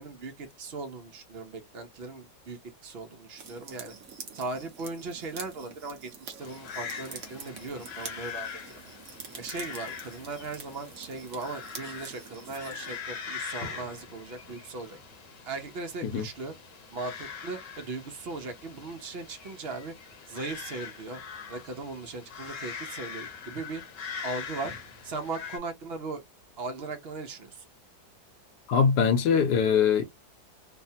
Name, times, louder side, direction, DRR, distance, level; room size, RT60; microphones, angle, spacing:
voice 1, 0.0-3.9 4.3-8.5 9.3-15.0 15.5-16.5 16.9-19.9 20.3-21.2 21.5-23.8 24.2-24.7 25.0-26.2 26.6-27.6, right 3 dB, 75° right, 0.5 m, -38 dB
sound 1, 3.4-13.0, right 5 dB, 55° right, 1.0 m, -46 dB
sound 2, 6.4-25.6, left 6 dB, 55° left, 1.0 m, -42 dB
voice 2, 28.7-30.0, left 6 dB, 75° left, 1.1 m, -22 dB
3.2 x 2.1 x 2.7 m
omnidirectional pair, 1.9 m